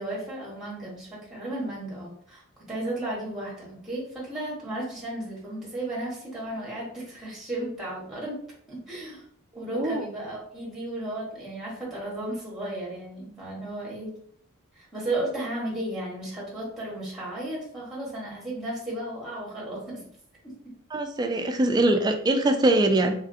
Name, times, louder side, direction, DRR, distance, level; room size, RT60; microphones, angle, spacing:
voice 1, 0.0-2.4 2.7-8.4 8.7-9.2 9.5-14.1 14.7-20.0, right 1 dB, ahead, -5 dB, 1.0 m, -34 dB
voice 2, 9.6-10.1 20.9-23.1, right 2 dB, 20° right, 5 dB, 0.3 m, -23 dB
3.1 x 2.5 x 2.6 m, 0.62 s
head